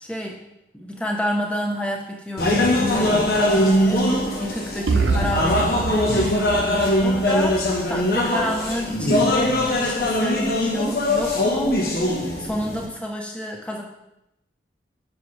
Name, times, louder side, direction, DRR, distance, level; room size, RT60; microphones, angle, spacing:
voice 1, 0.7-13.8, left 1 dB, 5° left, 0 dB, 1.0 m, -29 dB
sound 1, 2.4-12.9, left 1 dB, 55° left, 1.3 m, -21 dB
sound 2, 4.9-8.8, right 4 dB, 85° right, 0.5 m, -27 dB
9.4 x 6.0 x 3.4 m, 0.86 s
head